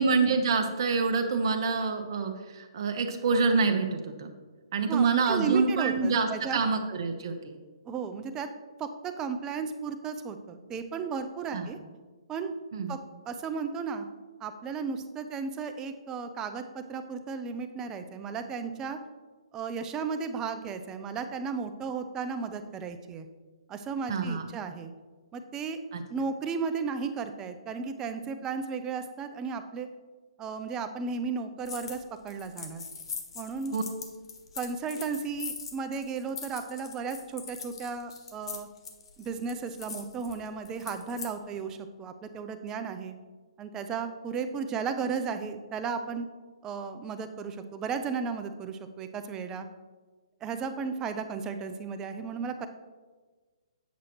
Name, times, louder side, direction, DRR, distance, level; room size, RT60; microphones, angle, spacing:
voice 1, 0.0-4.3 4.7-7.6 11.5-11.7 12.7-12.9 24.1-24.5 25.9-26.0 33.7-33.8, right 4 dB, 50° right, 5 dB, 0.8 m, -26 dB
voice 2, 4.9-6.6 7.9-8.5 8.8-11.8 12.3-12.5 12.9-13.0 13.3-14.1 14.4-19.0 19.5-23.3 23.7-24.9 25.3-25.8 26.1-29.9 30.4-32.8 33.3-33.8 34.6-38.7 39.2-43.1 43.6-46.3 46.6-49.7 50.4-52.7, right 5 dB, 20° right, 8 dB, 0.4 m, -34 dB
sound 1, 31.6-32.0 32.3-41.3, left 5 dB, 60° left, 1.1 m, -41 dB
8.1 x 6.2 x 3.0 m, 1.4 s
hypercardioid pair, 140°, 3 cm